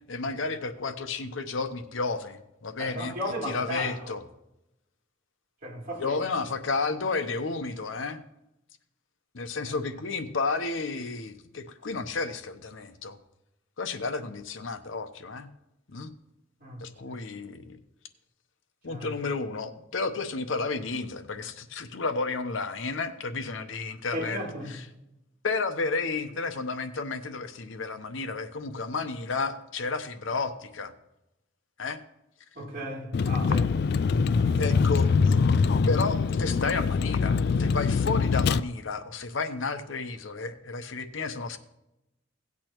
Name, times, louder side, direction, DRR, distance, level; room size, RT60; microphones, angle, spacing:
voice 1, 0.1-3.1 3.4-4.2 6.0-8.2 9.3-13.2 13.8-15.5 15.9-16.1 16.8-17.6 18.8-24.4 24.7-24.8 25.4-30.9 31.8-32.0 34.6-35.4 35.9-41.6, left 4 dB, 80° left, 0.8 m, -32 dB
voice 2, 2.8-4.1 5.6-6.2 9.5-9.8 16.6-17.2 18.9-19.1 24.1-24.7 32.5-33.7 34.3-34.7, equal, 45° right, 3.0 m, -36 dB
Vehicle, 33.1-38.6, left 5 dB, 55° left, 0.3 m, -23 dB
17.0 x 8.4 x 3.0 m
head